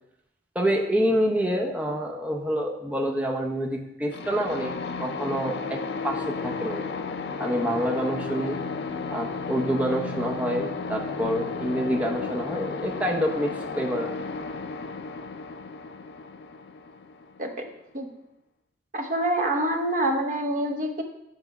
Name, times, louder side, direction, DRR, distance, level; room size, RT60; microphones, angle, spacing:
voice 1, 0.5-4.7 5.0-6.8 7.4-8.6 9.1-14.1, equal, 10° right, 0 dB, 0.7 m, -27 dB
sound 1, 4.1-17.8, left 4 dB, 65° left, 0.4 m, -33 dB
voice 2, 18.9-21.0, right 1 dB, 45° right, 3 dB, 0.8 m, -26 dB
7.8 x 3.5 x 5.9 m, 0.86 s
head